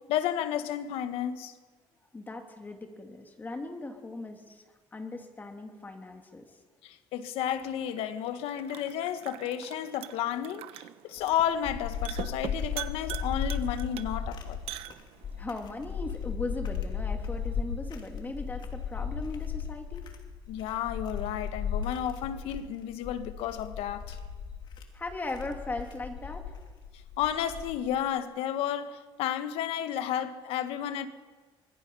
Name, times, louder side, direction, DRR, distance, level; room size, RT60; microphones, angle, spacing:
voice 1, 0.1-1.5 6.8-10.6 11.0-14.6 20.5-24.2 27.2-31.1, left 10 dB, 85° left, 1.5 m, -32 dB
voice 2, 2.1-4.6 4.9-6.4 15.4-20.0 24.9-26.6, left 2 dB, 20° left, 2.8 m, -38 dB
sound 1, 7.4-15.4, right 14 dB, 80° right, 1.0 m, -44 dB
sound 2, 11.2-28.0, left 6 dB, 50° left, 2.9 m, -36 dB
25.0 x 21.5 x 5.6 m
cardioid pair, 130°, 10 cm